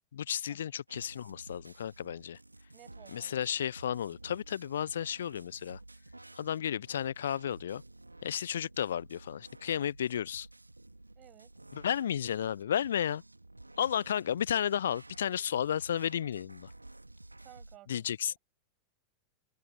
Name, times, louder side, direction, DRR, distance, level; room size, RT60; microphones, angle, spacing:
voice 1, 0.1-2.4 3.1-5.8 6.4-7.8 8.2-10.5 11.7-13.2 13.8-16.7 17.9-18.4, left 9 dB, 65° left, 0.4 m, -33 dB
sound 1, 0.9-17.8, right 2 dB, 85° right, 2.6 m, -53 dB
voice 2, 2.7-3.4 11.2-11.5 17.4-18.3, right 16 dB, 35° right, 6.7 m, -57 dB
figure-of-eight pair, 90°, 0 cm